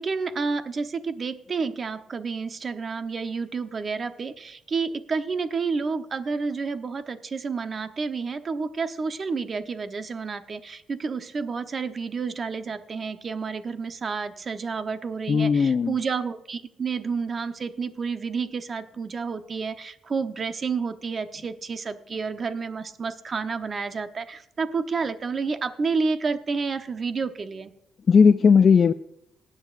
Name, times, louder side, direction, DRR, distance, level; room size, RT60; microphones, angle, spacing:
voice 1, 0.0-27.7, right 4 dB, 40° right, 9 dB, 0.9 m, -30 dB
voice 2, 15.3-15.9 28.1-28.9, left 6 dB, 45° left, 9 dB, 0.4 m, -17 dB
19.5 x 10.0 x 2.5 m, 0.78 s
cardioid pair, 90°, 0 cm